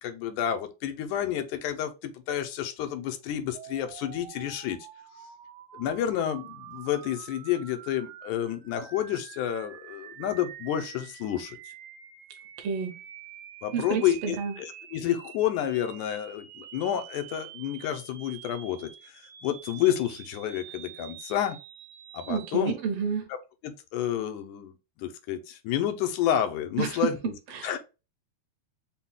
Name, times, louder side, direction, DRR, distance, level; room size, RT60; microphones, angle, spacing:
voice 1, 0.0-4.8 5.7-11.6 13.6-21.6 22.1-22.7 23.6-24.7 25.0-27.1 27.6-27.8, left 10 dB, 85° left, 2.0 m, -30 dB
sound 1, 3.5-22.6, right 10 dB, 85° right, 2.0 m, -47 dB
voice 2, 12.6-13.0 13.7-14.5 22.3-23.3 26.8-27.7, right 6 dB, 65° right, 1.8 m, -30 dB
5.7 x 2.2 x 3.5 m
omnidirectional pair, 3.5 m